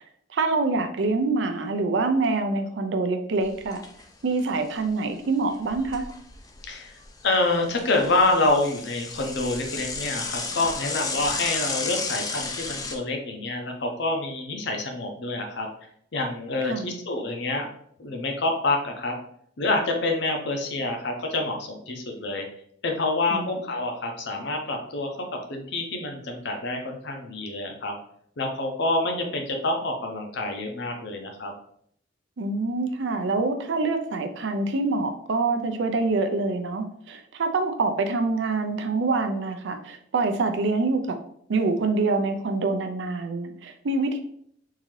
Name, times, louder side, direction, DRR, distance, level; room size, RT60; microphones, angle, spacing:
voice 1, 0.3-3.8 4.2-6.0 16.6-16.9 23.3-23.5 32.4-41.2 41.5-44.2, right 3 dB, 60° right, 6 dB, 0.4 m, -25 dB
Bicycle / Mechanisms, 3.4-4.0 4.4-4.5 4.7-4.8 5.5-6.7 7.0-13.0, left 4 dB, 20° left, 0.3 m, -33 dB
voice 2, 6.6-6.9 7.2-15.7 16.1-17.7 18.0-19.2 19.6-22.4 22.8-25.1 25.5-27.9 28.4-31.5, left 2 dB, 60° left, 3 dB, 0.6 m, -27 dB
3.7 x 2.7 x 3.1 m, 0.66 s
head